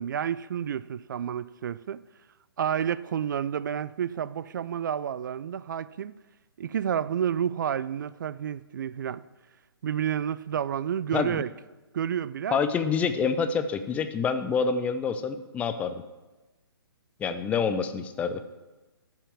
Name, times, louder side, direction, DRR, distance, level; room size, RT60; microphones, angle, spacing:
voice 1, 0.0-2.0 2.6-6.1 6.6-9.2 9.8-11.5 11.9-12.6, right 9 dB, 50° right, 0.4 m, -30 dB
voice 2, 12.5-16.0 17.2-18.4, left 6 dB, 10° left, 0.5 m, -27 dB
13.5 x 5.8 x 7.1 m
figure-of-eight pair, 140°, 13 cm